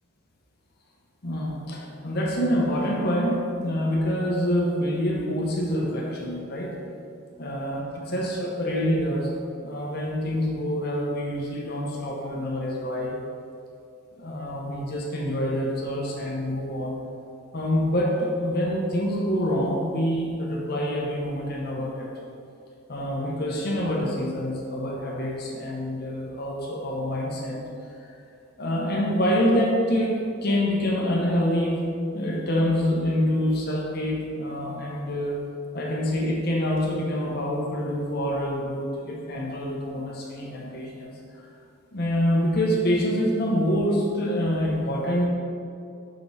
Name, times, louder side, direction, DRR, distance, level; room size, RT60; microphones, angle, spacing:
voice 1, 1.2-6.8 7.4-9.3 9.6-13.1 14.2-16.9 17.5-22.1 22.9-27.6 28.6-31.9 32.1-35.4 35.7-41.1 41.9-45.3, equal, 55° left, -2 dB, 0.9 m, -26 dB
5.2 x 5.0 x 4.1 m, 2.5 s
head